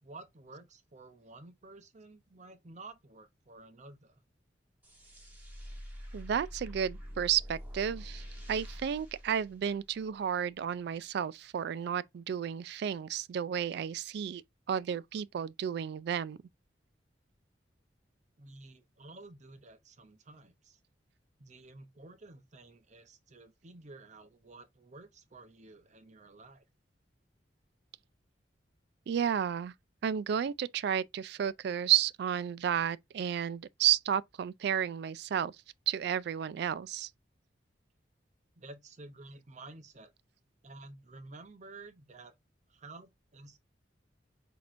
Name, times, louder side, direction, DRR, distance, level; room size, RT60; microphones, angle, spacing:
voice 1, 0.0-4.2 18.4-20.8 21.4-26.6 38.5-40.1 40.6-42.3 42.7-43.6, right 2 dB, 40° right, 0.7 m, -52 dB
sound 1, 4.8-10.2, equal, 10° right, 1.7 m, -46 dB
voice 2, 6.1-14.4 14.7-16.4 29.1-29.7 30.0-35.6 35.9-37.1, right 9 dB, 65° right, 0.3 m, -32 dB
6.0 x 2.9 x 2.5 m
head